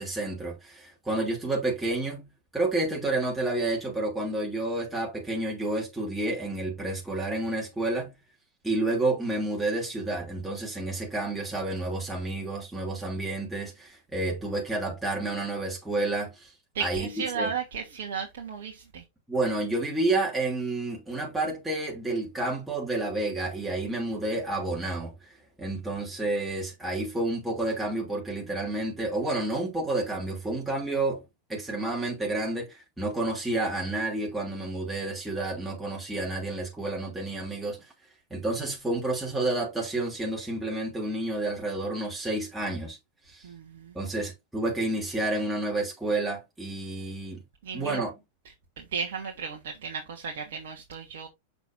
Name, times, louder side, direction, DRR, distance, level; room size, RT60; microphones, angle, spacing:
voice 1, 0.0-2.3 2.5-8.1 8.6-16.5 16.8-17.5 19.3-25.1 25.6-31.2 31.5-37.8 38.3-43.0 43.3-43.5 43.9-47.4 47.7-48.1, right 2 dB, 5° right, 3.0 m, -30 dB
voice 2, 16.7-19.0 43.4-44.0 47.6-48.0 48.8-51.3, right 5 dB, 55° right, 1.4 m, -34 dB
6.9 x 6.1 x 2.6 m
figure-of-eight pair, 90°, 0 cm